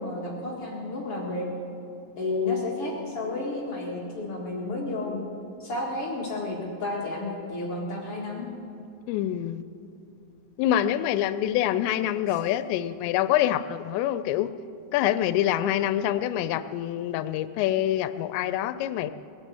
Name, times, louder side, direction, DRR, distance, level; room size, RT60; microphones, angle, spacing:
voice 1, 0.0-1.5 2.2-5.3 5.6-8.5 12.3-12.4, left 2 dB, 50° left, -3 dB, 1.9 m, -31 dB
voice 2, 9.1-9.6 10.6-14.5 14.9-19.1, left 12 dB, 90° left, 12 dB, 2.8 m, -26 dB
20.5 x 8.9 x 7.7 m, 2.7 s
omnidirectional pair, 5.0 m